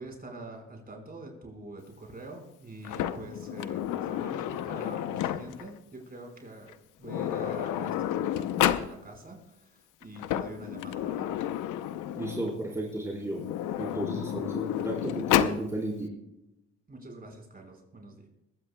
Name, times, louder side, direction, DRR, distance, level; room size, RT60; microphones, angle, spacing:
voice 1, 0.0-11.3 14.5-14.6 16.9-18.3, right 2 dB, 30° right, 2 dB, 4.6 m, -45 dB
Sliding door, 2.8-5.7 6.7-6.8 7.0-8.9 10.0-12.5 13.3-15.6, left 11 dB, 90° left, 0.7 m, -30 dB
voice 2, 12.1-13.4 13.8-16.1, right 1 dB, 10° right, -3 dB, 4.1 m, -33 dB
21.5 x 16.0 x 2.2 m, 0.88 s
cardioid pair, 90°, 30 cm